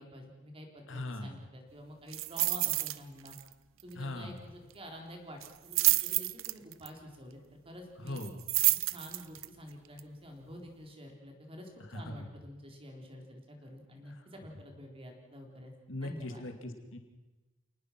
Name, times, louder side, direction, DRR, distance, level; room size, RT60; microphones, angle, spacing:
voice 1, 0.0-3.3 3.8-8.2 8.9-15.7 16.0-16.4, equal, 30° right, 2 dB, 4.1 m, -49 dB
voice 2, 0.9-1.4 4.0-4.4 8.0-8.3 11.9-12.1 15.9-17.0, left 2 dB, 65° left, 5 dB, 2.4 m, -39 dB
sound 1, 2.1-3.0 3.3-3.5 3.8-3.9 5.4-6.9 8.2-9.5 10.0-10.1, right 18 dB, 80° right, 0.7 m, -29 dB
28.5 x 19.5 x 6.0 m, 1.2 s
head